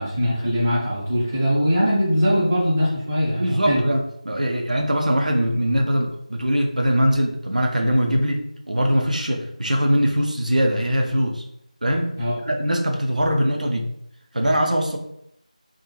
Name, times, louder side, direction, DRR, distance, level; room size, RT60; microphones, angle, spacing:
voice 1, 0.0-3.9 12.2-12.3, equal, 15° right, -10 dB, 0.7 m, -21 dB
voice 2, 3.4-11.4 11.8-13.9 14.3-15.0, equal, 80° right, 2 dB, 0.5 m, -22 dB
2.3 x 2.1 x 3.0 m, 0.75 s
figure-of-eight pair, 170°, 4 cm